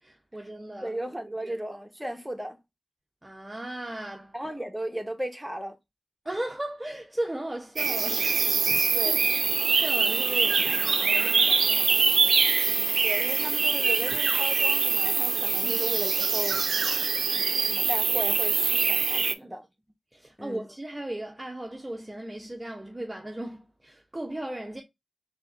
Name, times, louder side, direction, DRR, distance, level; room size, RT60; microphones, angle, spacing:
voice 1, 0.0-1.0 1.4-1.5 3.2-4.3 6.2-8.3 8.7-9.2 9.7-12.3 15.6-15.8 19.4-19.5 20.1-24.8, right 1 dB, 20° right, 0.5 m, -37 dB
voice 2, 0.8-2.6 4.3-5.8 8.9-9.3 12.6-17.0 17.7-19.6 20.4-20.7, right 1 dB, 5° right, 0.9 m, -36 dB
sound 1, 7.8-19.3, right 5 dB, 90° right, 0.4 m, -24 dB
4.1 x 2.0 x 3.3 m
cardioid pair, 55°, 0 cm